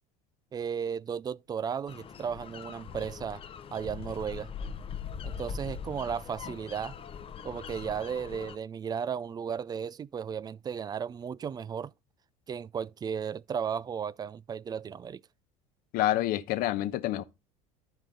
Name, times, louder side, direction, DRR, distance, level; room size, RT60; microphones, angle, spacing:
voice 1, 0.5-3.4 3.7-4.5 5.2-7.0 7.4-11.9 12.5-15.2, right 7 dB, 25° right, 0.3 m, -35 dB
sound 1, 1.9-8.6, left 6 dB, 35° left, 0.7 m, -41 dB
voice 2, 15.9-17.2, left 13 dB, 60° left, 1.0 m, -28 dB
12.0 x 4.8 x 3.9 m
hypercardioid pair, 85°, 17 cm